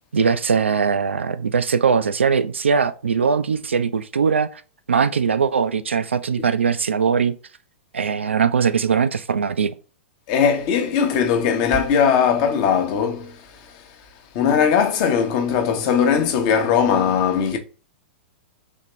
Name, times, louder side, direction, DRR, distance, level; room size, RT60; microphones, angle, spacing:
voice 1, 0.1-4.6 4.9-7.4 7.9-9.7, right 6 dB, 70° right, 0.4 m, -20 dB
voice 2, 10.3-13.3 14.3-17.6, left 7 dB, 40° left, 0.7 m, -19 dB
4.2 x 2.9 x 3.1 m
figure-of-eight pair, 100°, 7 cm